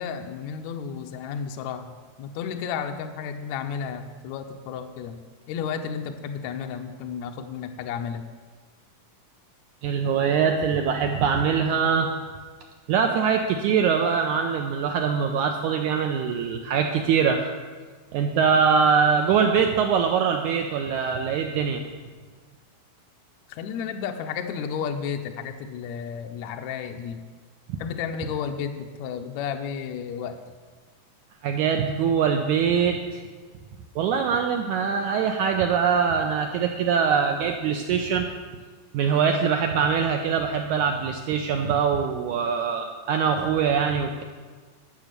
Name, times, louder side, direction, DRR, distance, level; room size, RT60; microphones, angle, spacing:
voice 1, 0.0-5.2 5.5-8.3 23.5-27.3 27.8-30.5, left 7 dB, 85° left, 5 dB, 1.6 m, -32 dB
voice 2, 9.8-12.1 12.9-17.5 18.1-21.8 27.7-27.8 31.4-33.2 33.9-38.3 38.9-44.2, right 6 dB, 85° right, 4 dB, 1.7 m, -23 dB
12.0 x 6.9 x 6.6 m, 1.5 s
omnidirectional pair, 4.1 m